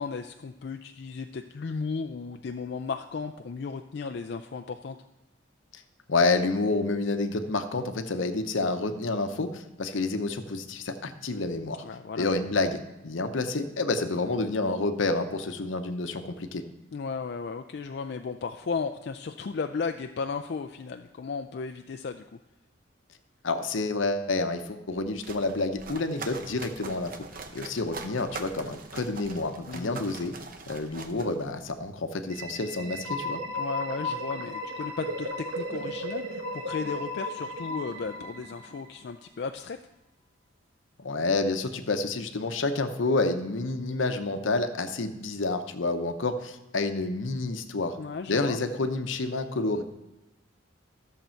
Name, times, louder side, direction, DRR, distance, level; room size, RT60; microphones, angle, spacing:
voice 1, 0.0-5.0 11.8-12.3 16.9-22.2 29.7-30.0 33.6-39.8 48.0-48.6, left 5 dB, 55° left, 6 dB, 0.4 m, -35 dB
voice 2, 6.1-11.8 12.2-12.8 13.0-16.6 23.4-27.1 27.5-30.3 30.7-33.4 41.0-48.0 48.3-49.8, left 3 dB, 75° left, 8 dB, 0.8 m, -29 dB
sound 1, 24.9-31.9, right 3 dB, 45° right, 0.7 m, -43 dB
sound 2, 32.3-39.0, left 1 dB, 90° right, 1.2 m, -35 dB
13.0 x 6.7 x 4.4 m, 0.99 s
head